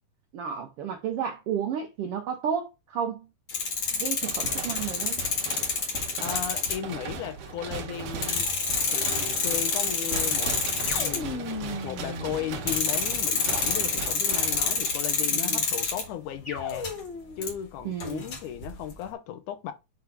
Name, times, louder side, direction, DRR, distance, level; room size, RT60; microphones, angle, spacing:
voice 1, 0.3-3.3 4.0-5.2 15.3-15.6 17.8-18.3, right 7 dB, 85° right, 1.3 m, -32 dB
sound 1, 3.5-7.0 7.7-7.8 8.2-11.2 12.7-16.0 16.6-17.0 17.4-17.5 18.0-18.9, left 5 dB, 50° left, 2.1 m, -27 dB
sound 2, 4.2-15.4, right 6 dB, 65° right, 1.7 m, -38 dB
voice 2, 6.2-8.5 8.9-10.5 10.9-11.4 11.8-16.9 17.4-19.7, left 10 dB, 80° left, 2.3 m, -35 dB
sound 3, 10.9-13.4 16.4-17.5, left 3 dB, 30° left, 1.4 m, -37 dB
6.2 x 3.5 x 4.6 m
omnidirectional pair, 3.5 m